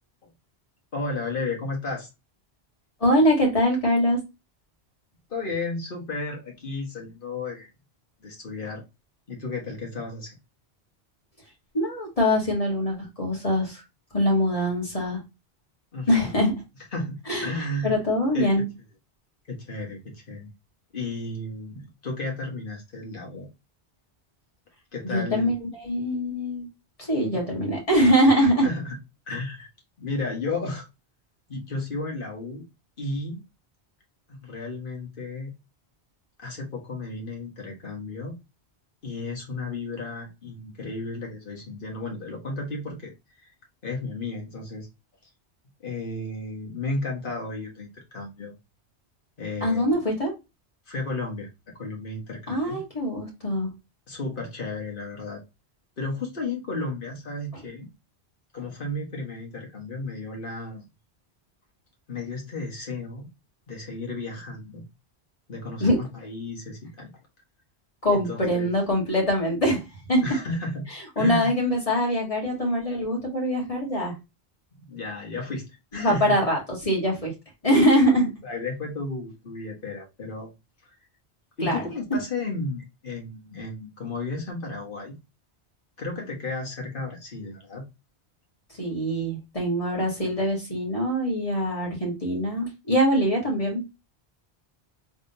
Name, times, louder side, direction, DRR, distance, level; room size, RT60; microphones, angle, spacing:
voice 1, 0.9-2.1 5.3-7.7 8.2-8.8 9.3-10.4 15.9-16.3 16.9-17.9 18.3-18.5 19.5-20.5 20.9-23.5 24.9-25.5 28.6-29.0 29.3-29.7 30.0-30.8 31.5-32.7 33.0-33.4 34.3-35.5 36.4-38.4 39.0-43.1 43.8-44.9 45.8-48.5 49.4-50.0 50.9-51.5 51.8-52.8 54.1-55.4 56.0-57.9 58.5-60.9 62.1-63.3 63.7-64.9 65.5-67.1 68.1-68.7 70.2-70.9 71.2-71.5 74.8-75.7 75.9-76.4 78.4-80.5 81.6-85.2 86.0-87.8, left 2 dB, 55° left, 1.5 m, -33 dB
voice 2, 3.0-4.2 11.7-13.8 14.1-15.2 16.1-16.6 17.3-17.5 17.8-18.7 25.0-26.7 27.0-28.7 49.6-50.3 52.5-53.7 65.8-66.0 68.0-70.2 71.2-74.1 75.9-77.3 77.6-78.3 81.6-81.8 88.8-93.8, equal, 30° left, 1.7 m, -23 dB
3.6 x 3.4 x 2.7 m
omnidirectional pair, 1.1 m